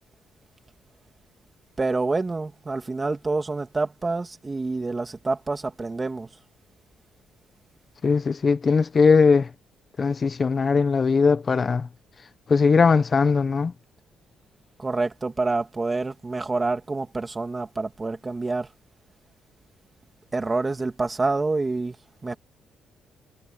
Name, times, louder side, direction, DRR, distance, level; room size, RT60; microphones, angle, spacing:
voice 1, 1.8-6.3 14.8-18.7 20.3-22.0 22.2-22.4, right 3 dB, 25° right, 2.7 m, -27 dB
voice 2, 8.0-9.5 10.0-11.9 12.5-13.7, left 5 dB, 40° left, 1.2 m, -19 dB
cardioid pair, 90°, 0 cm